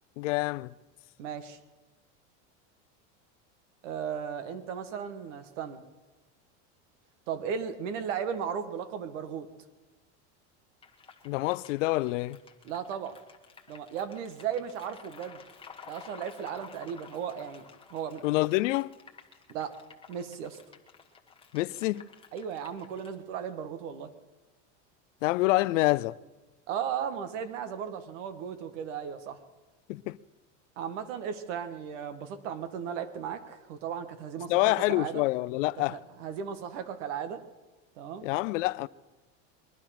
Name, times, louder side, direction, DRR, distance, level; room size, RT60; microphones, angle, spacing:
voice 1, 0.2-0.7 11.2-12.4 18.2-18.9 21.5-22.1 25.2-26.2 29.9-30.2 34.5-36.0 38.2-38.9, left 19 dB, 90° left, 0.6 m, -27 dB
voice 2, 1.2-1.6 3.8-5.8 7.3-9.5 12.6-13.2 13.7-15.4 15.9-17.6 17.9-18.2 19.5-19.8 20.1-20.6 22.3-24.1 26.7-29.4 30.8-35.2 35.8-37.4 38.0-38.3, right 8 dB, 80° right, 1.6 m, -36 dB
sound 1, 10.8-23.1, left 6 dB, 15° left, 1.3 m, -53 dB
22.0 x 11.5 x 5.9 m
supercardioid pair, 145°, 36 cm